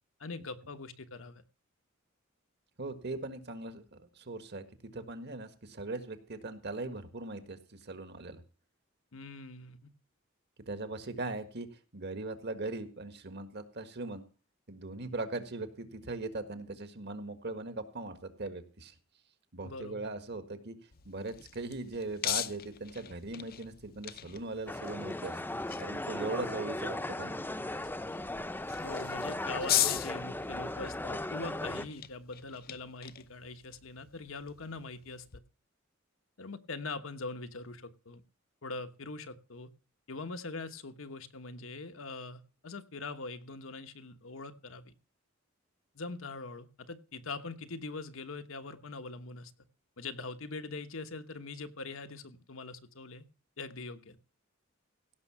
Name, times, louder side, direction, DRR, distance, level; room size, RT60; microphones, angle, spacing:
voice 1, 0.2-1.4 9.1-9.9 19.6-20.0 28.8-35.4 36.4-38.2 38.6-39.7 40.1-44.9 45.9-49.5 50.0-53.2 53.6-54.2, left 3 dB, 80° left, 9 dB, 1.2 m, -42 dB
voice 2, 2.8-4.6 4.9-8.4 10.7-11.7 11.9-14.2 14.7-18.9 19.5-20.7 21.0-25.4 25.8-27.4, right 2 dB, 55° right, 9 dB, 1.7 m, -39 dB
sound 1, 20.9-35.4, left 12 dB, 50° left, 0.7 m, -39 dB
sound 2, 24.7-31.9, left 1 dB, 10° left, 0.7 m, -37 dB
16.5 x 6.5 x 5.9 m, 0.35 s
head